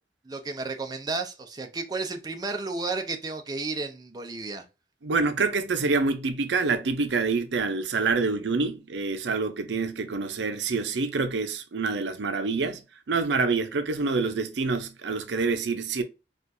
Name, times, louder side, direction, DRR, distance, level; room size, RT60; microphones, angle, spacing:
voice 1, 0.2-4.6, right 3 dB, 20° right, 0.5 m, -32 dB
voice 2, 5.0-12.8 13.1-16.0, right 4 dB, 80° right, 0.5 m, -26 dB
4.3 x 2.4 x 2.5 m
head